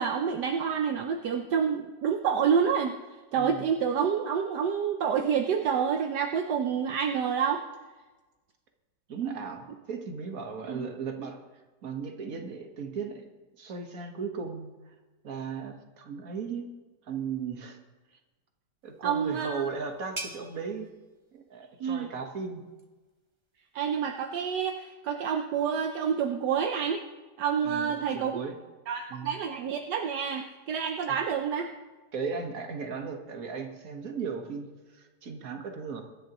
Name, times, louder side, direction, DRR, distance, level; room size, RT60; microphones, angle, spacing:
voice 1, 0.0-3.0 3.3-7.6 10.7-10.9 19.0-19.7 21.8-22.1 23.7-27.0 27.4-28.3 28.9-31.7, right 7 dB, 75° right, 4 dB, 1.3 m, -28 dB
voice 2, 3.3-3.7 9.1-11.4 11.8-13.3 13.6-14.9 15.2-16.7 17.0-17.8 18.8-20.9 21.3-22.6 27.6-28.5 29.1-29.4 31.1-31.2 32.1-36.0, right 5 dB, 55° right, 4 dB, 1.7 m, -36 dB
sound 1, 18.8-24.2, right 2 dB, 25° right, 0.7 m, -47 dB
24.0 x 10.5 x 3.0 m, 1.2 s
omnidirectional pair, 1.9 m